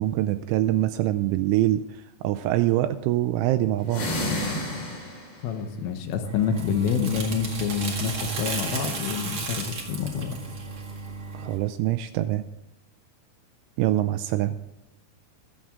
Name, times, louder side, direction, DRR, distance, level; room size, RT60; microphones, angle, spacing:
voice 1, 0.0-4.1 11.3-12.4 13.8-14.6, right 14 dB, 85° right, 10 dB, 2.8 m, -24 dB
sound 1, 3.8-5.5, left 1 dB, 55° left, 6.4 m, -30 dB
voice 2, 5.4-10.4, left 6 dB, 80° left, 6 dB, 3.5 m, -27 dB
sound 2, 6.1-11.6, right 4 dB, 55° right, 1.4 m, -34 dB
21.5 x 7.4 x 3.7 m, 0.90 s
omnidirectional pair, 5.9 m